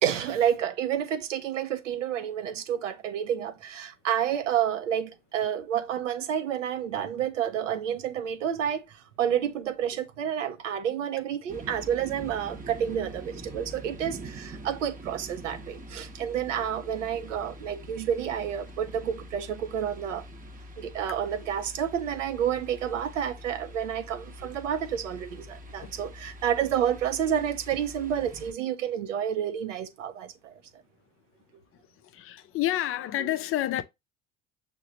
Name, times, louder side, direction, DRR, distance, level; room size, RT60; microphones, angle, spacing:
voice 1, 0.0-20.2 20.8-30.6, right 9 dB, 85° right, 0.6 m, -29 dB
sound 1, 11.5-28.5, right 1 dB, 25° right, 0.8 m, -44 dB
voice 2, 32.1-33.8, left 14 dB, 40° left, 0.4 m, -28 dB
6.5 x 2.2 x 2.6 m
hypercardioid pair, 65°, 36 cm